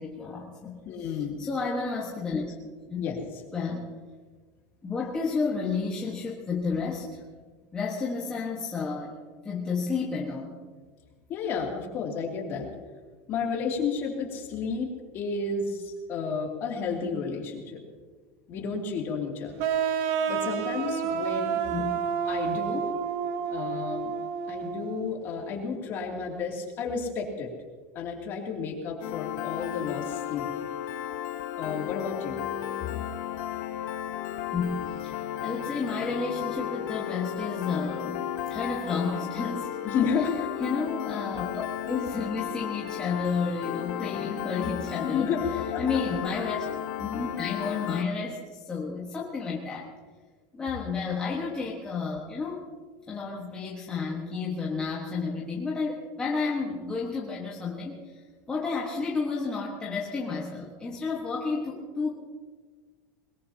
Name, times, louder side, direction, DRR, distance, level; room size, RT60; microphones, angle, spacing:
voice 1, 0.0-0.8 1.4-2.4 2.9-3.1 3.5-3.9 4.8-7.2 7.7-9.2 9.4-10.6 21.7-21.9 34.5-39.7 40.6-45.3 45.8-46.7 47.0-49.9 50.5-52.6 53.1-58.1 58.5-62.1, left 4 dB, 10° left, -4 dB, 1.4 m, -31 dB
voice 2, 0.8-1.4 3.0-3.2 11.3-12.7 13.3-17.8 18.5-19.7 20.3-21.6 22.3-22.9 23.5-24.1 24.5-27.5 27.9-30.5 31.6-32.5 39.8-40.3 45.0-45.8, left 5 dB, 30° left, 0 dB, 2.7 m, -31 dB
sound 1, 19.6-25.1, right 7 dB, 50° right, 1.1 m, -29 dB
Piano, 29.0-48.0, left 11 dB, 55° left, 1.0 m, -34 dB
21.5 x 21.5 x 2.9 m, 1.5 s
cardioid pair, 180°, 7 cm